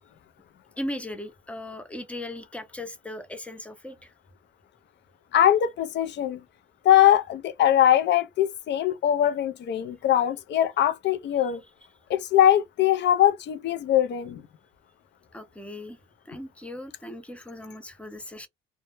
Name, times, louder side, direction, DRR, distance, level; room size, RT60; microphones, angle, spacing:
voice 1, 0.8-4.1 11.4-11.5 15.3-16.0 16.3-18.5, left 1 dB, 5° left, 0.5 m, -38 dB
voice 2, 5.3-6.4 6.8-11.6 12.1-14.4, left 11 dB, 60° left, 0.4 m, -21 dB
2.1 x 2.0 x 3.0 m
cardioid pair, 90°, 20 cm